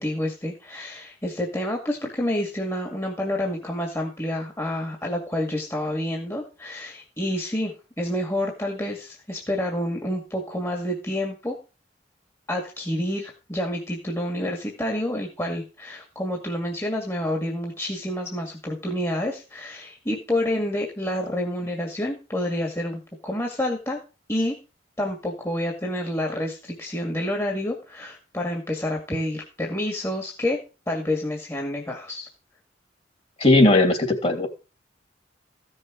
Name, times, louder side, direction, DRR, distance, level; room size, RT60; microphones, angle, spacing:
voice 1, 0.0-11.6 12.5-24.0 24.3-24.6 25.0-30.6 30.9-32.3, left 1 dB, 15° left, 0 dB, 2.1 m, -28 dB
voice 2, 33.4-34.5, left 2 dB, 35° left, 5 dB, 2.7 m, -17 dB
15.0 x 6.6 x 5.1 m, 0.32 s
head